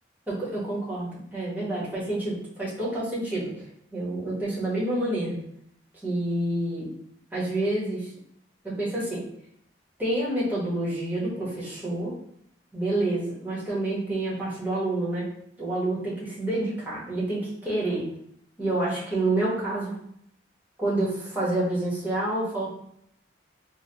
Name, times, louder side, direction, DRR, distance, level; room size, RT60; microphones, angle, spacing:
voice 1, 0.3-3.6 3.9-5.4 6.0-6.9 7.3-8.1 8.6-9.2 10.0-12.1 12.7-15.3 15.6-18.1 18.6-19.9 20.8-22.7, right 1 dB, 10° right, -8 dB, 1.2 m, -28 dB
3.8 x 2.3 x 2.9 m, 0.69 s
head